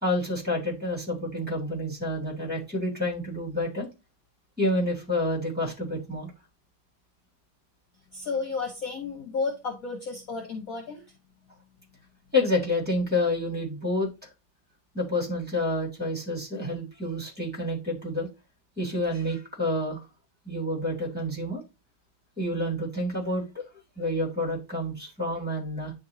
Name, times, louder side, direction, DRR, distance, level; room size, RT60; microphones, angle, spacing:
voice 1, 0.0-3.9 4.6-6.3 12.3-14.1 14.9-18.3 18.8-20.0 20.4-21.6 22.4-23.6 24.0-25.9, left 1 dB, 5° right, -3 dB, 3.1 m, -28 dB
voice 2, 8.1-11.0, left 4 dB, 50° left, 0 dB, 1.4 m, -32 dB
10.5 x 3.8 x 2.8 m, 0.26 s
omnidirectional pair, 2.1 m